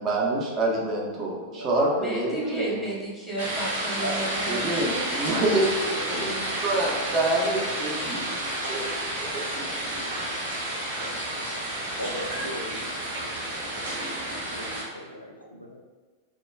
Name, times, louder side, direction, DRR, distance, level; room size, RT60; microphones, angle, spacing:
voice 1, 0.0-2.8 4.5-8.8 9.3-9.6, right 1 dB, 30° right, -2 dB, 0.6 m, -27 dB
voice 2, 0.9-1.7 4.0-4.5 12.0-12.9 14.4-15.8, equal, 90° left, 1 dB, 0.3 m, -38 dB
voice 3, 2.0-5.1, right 2 dB, ahead, -6 dB, 0.9 m, -33 dB
sound 1, 3.4-14.8, right 1 dB, 65° right, 0.8 m, -31 dB
2.2 x 2.2 x 3.2 m, 1.4 s
figure-of-eight pair, 90°, 0 cm